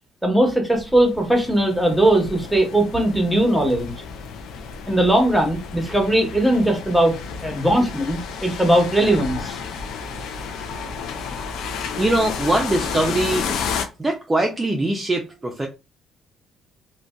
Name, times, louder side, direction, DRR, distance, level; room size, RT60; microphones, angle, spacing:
voice 1, 0.2-3.9 4.9-7.1 7.4-9.6, right 1 dB, ahead, 0.9 m, -19 dB
sound 1, 0.7-13.9, left 6 dB, 75° left, 0.4 m, -32 dB
voice 2, 12.0-13.5 14.0-15.7, right 2 dB, 20° right, 0.4 m, -22 dB
2.5 x 2.2 x 2.3 m
cardioid pair, 80°, 0 cm